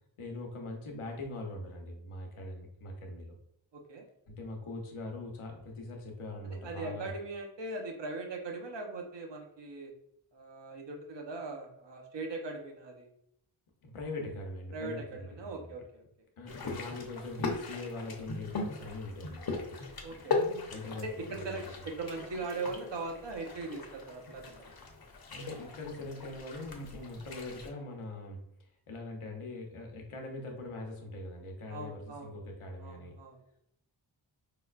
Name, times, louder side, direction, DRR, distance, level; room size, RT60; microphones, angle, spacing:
voice 1, 0.2-3.3 4.3-7.1 13.8-15.7 16.4-19.7 20.7-21.1 21.5-21.6 25.3-28.4 28.9-33.1, left 2 dB, 85° left, 1 dB, 0.8 m, -42 dB
voice 2, 3.7-4.1 6.4-9.9 10.3-13.1 14.7-16.0 20.0-20.4 20.9-24.7 31.7-32.3 32.8-33.6, right 3 dB, 60° right, 2 dB, 0.8 m, -40 dB
sound 1, 16.5-27.7, left 3 dB, 50° left, 0.8 m, -39 dB
4.9 x 2.1 x 2.4 m, 0.76 s
wide cardioid pair, 60°, 49 cm